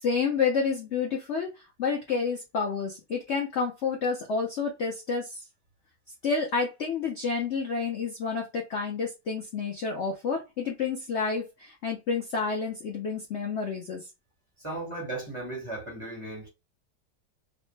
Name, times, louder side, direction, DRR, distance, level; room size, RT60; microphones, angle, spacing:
voice 1, 0.0-1.5 1.8-5.4 6.2-14.0, left 5 dB, 75° left, 0.6 m, -29 dB
voice 2, 14.6-16.5, right 2 dB, 20° right, 1.2 m, -36 dB
3.1 x 2.1 x 3.1 m
omnidirectional pair, 2.0 m